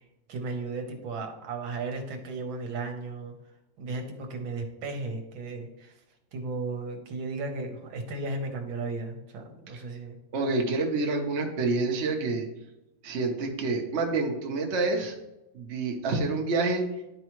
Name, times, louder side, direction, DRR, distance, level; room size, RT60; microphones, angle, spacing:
voice 1, 0.0-3.3 3.8-5.9 6.3-10.2, right 3 dB, 75° right, 4 dB, 1.8 m, -35 dB
voice 2, 10.3-12.5 13.0-15.2 15.5-16.8, right 3 dB, 40° right, 2 dB, 1.1 m, -28 dB
11.5 x 4.7 x 3.1 m, 0.95 s
omnidirectional pair, 2.2 m